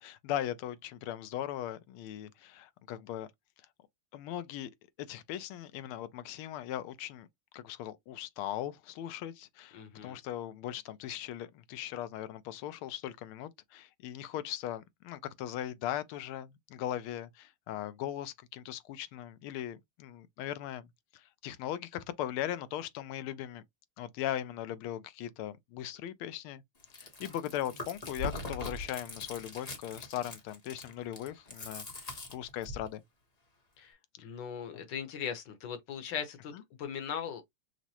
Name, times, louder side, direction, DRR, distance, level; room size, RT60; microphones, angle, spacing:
voice 1, 0.0-3.3 4.1-4.7 5.0-7.3 7.5-20.9 21.1-23.6 24.0-26.6 27.0-33.0 34.2-34.3 34.7-34.8 36.5-36.6, left 12 dB, 85° left, 1.5 m, -39 dB
voice 2, 9.7-10.2 33.8-33.9 34.2-36.5 36.8-37.4, left 7 dB, 65° left, 1.4 m, -39 dB
Chewing mastication, 26.8-32.9, left 2 dB, 35° left, 0.6 m, -42 dB
6.0 x 2.1 x 2.8 m
omnidirectional pair, 2.3 m